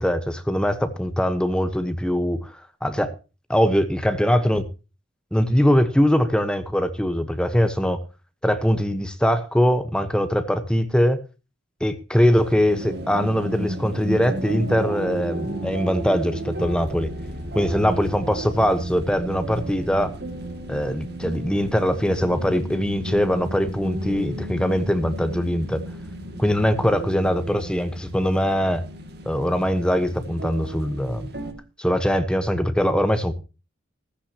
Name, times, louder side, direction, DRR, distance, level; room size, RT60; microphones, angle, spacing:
voice 1, 0.0-3.1 3.5-4.6 5.3-8.0 8.4-11.2 11.8-17.1 17.5-20.1 20.7-25.8 26.4-28.8 29.3-31.3 31.8-33.3, equal, 5° left, 9 dB, 1.1 m, -22 dB
sound 1, 12.3-31.5, right 1 dB, 50° right, 2.2 m, -33 dB
15.0 x 14.5 x 2.9 m, 0.31 s
head